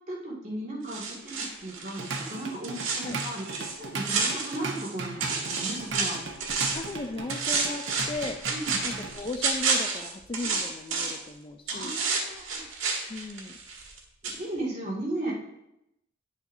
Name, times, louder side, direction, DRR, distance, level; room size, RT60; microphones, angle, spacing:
voice 1, 0.1-6.2 8.5-8.9 11.7-12.6 14.2-15.3, right 1 dB, 35° right, -5 dB, 2.1 m, -36 dB
sound 1, 0.9-4.9 5.2-6.9 7.3-11.3 11.7-14.0 14.2-14.4, right 4 dB, 90° right, 1.5 m, -30 dB
Drum kit / Drum, 1.8-9.1, right 3 dB, 65° right, 1.0 m, -37 dB
voice 2, 6.7-8.4 8.8-12.0 13.1-13.6, left 2 dB, 25° left, 6 dB, 0.4 m, -36 dB
9.7 x 7.1 x 2.7 m, 0.85 s
head